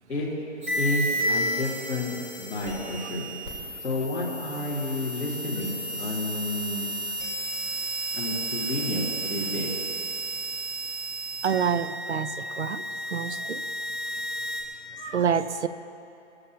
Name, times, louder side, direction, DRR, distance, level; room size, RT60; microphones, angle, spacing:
sound 1, 0.6-14.6, right 1 dB, 10° right, 1.3 m, -32 dB
voice 1, 0.8-3.3 3.8-6.9 8.1-9.8, left 2 dB, 5° left, -12 dB, 1.9 m, -30 dB
voice 2, 11.4-12.8 13.1-13.6 15.0-15.7, right 7 dB, 70° right, 13 dB, 0.7 m, -27 dB
23.5 x 14.5 x 2.8 m, 2.8 s
hypercardioid pair, 180°, 36 cm